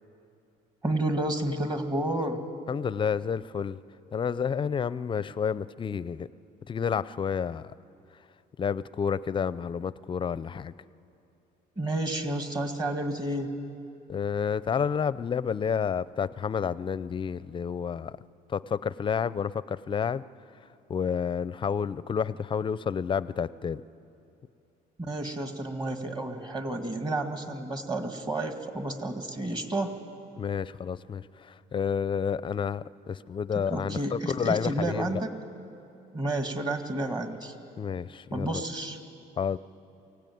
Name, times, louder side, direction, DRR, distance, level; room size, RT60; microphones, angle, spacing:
voice 1, 0.8-2.4 11.8-13.5 25.0-30.0 33.7-35.3 36.1-37.5 38.3-39.0, right 1 dB, 25° right, 6 dB, 2.0 m, -31 dB
voice 2, 2.7-3.8 4.1-6.3 6.7-7.7 8.6-10.7 14.1-18.2 18.5-20.2 20.9-23.8 30.4-35.2 37.8-38.6 39.4-39.6, left 7 dB, 30° left, 18 dB, 0.5 m, -30 dB
23.5 x 17.0 x 9.3 m, 2.8 s
cardioid pair, 110°, 17 cm